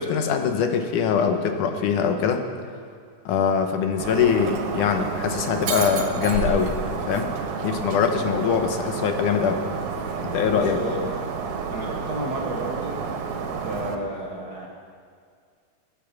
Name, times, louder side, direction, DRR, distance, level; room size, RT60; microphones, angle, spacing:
voice 1, 0.0-2.4 3.3-7.3 7.6-9.6 10.2-11.0, left 6 dB, 85° left, 6 dB, 2.6 m, -23 dB
Shatter, 4.0-14.0, right 5 dB, 80° right, 2.7 m, -30 dB
sound 1, 4.4-10.7, equal, 65° left, 6.3 m, -38 dB
voice 2, 10.5-11.0 11.7-13.0 13.6-14.7, right 2 dB, 50° right, -2 dB, 1.2 m, -32 dB
21.5 x 10.0 x 5.8 m, 2.2 s
omnidirectional pair, 3.5 m